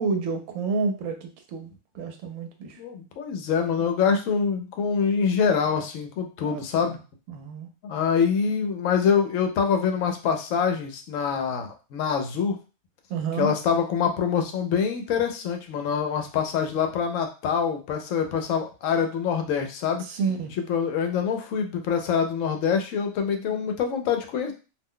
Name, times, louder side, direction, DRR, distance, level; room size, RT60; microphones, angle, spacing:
voice 1, 0.0-1.7 1.9-2.8 6.4-7.0 7.3-7.7 13.1-13.5 20.0-20.5, right 4 dB, 80° right, 5 dB, 1.0 m, -29 dB
voice 2, 2.8-7.0 7.8-12.6 13.4-20.0 20.6-24.5, left 6 dB, 75° left, 5 dB, 0.9 m, -25 dB
2.5 x 2.1 x 3.6 m, 0.33 s
omnidirectional pair, 1.4 m